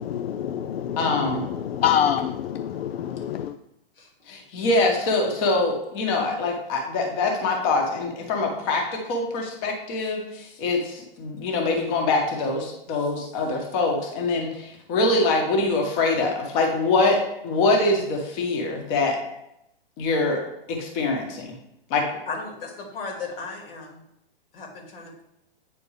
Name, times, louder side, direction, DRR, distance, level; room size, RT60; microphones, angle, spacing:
voice 1, 0.0-3.5, left 9 dB, 85° left, 9 dB, 0.5 m, -26 dB
voice 2, 1.0-1.4 4.3-19.2 20.0-20.4 20.7-21.5 21.9-22.1, left 3 dB, 40° left, 1 dB, 1.7 m, -24 dB
voice 3, 22.3-24.0 24.5-25.2, left 4 dB, 65° left, 1 dB, 2.3 m, -35 dB
8.8 x 4.4 x 3.3 m, 0.81 s
hypercardioid pair, 135°, 30 cm